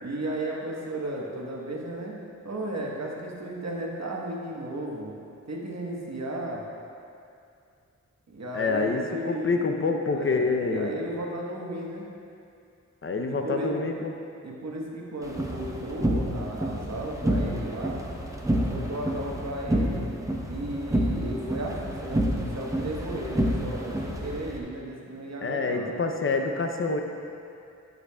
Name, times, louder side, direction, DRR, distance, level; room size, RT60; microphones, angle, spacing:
voice 1, 0.0-2.2 2.4-5.1 5.5-6.6 8.3-9.6 10.1-12.0 13.3-13.7 14.4-18.0 18.6-20.1 20.5-26.0, right 1 dB, 60° right, -2 dB, 1.2 m, -34 dB
voice 2, 8.5-10.9 13.0-14.1 25.4-27.0, left 3 dB, 45° left, 4 dB, 0.6 m, -27 dB
sound 1, 15.2-24.6, right 1 dB, 10° right, 0.8 m, -29 dB
11.0 x 6.6 x 2.3 m, 2.5 s
wide cardioid pair, 70°, 30 cm